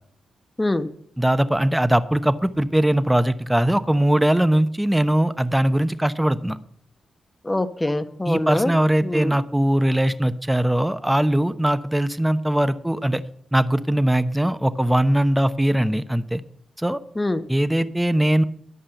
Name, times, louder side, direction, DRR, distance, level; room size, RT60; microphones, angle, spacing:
voice 1, 0.6-0.9 7.4-8.7 9.0-9.3 17.2-17.4, left 1 dB, 20° left, 11 dB, 1.2 m, -24 dB
voice 2, 1.2-6.6 8.2-13.2 13.5-16.4 16.8-17.0 17.5-18.4, right 1 dB, 10° right, 12 dB, 0.9 m, -20 dB
11.5 x 5.5 x 7.9 m, 0.65 s
supercardioid pair, 50°, 0 cm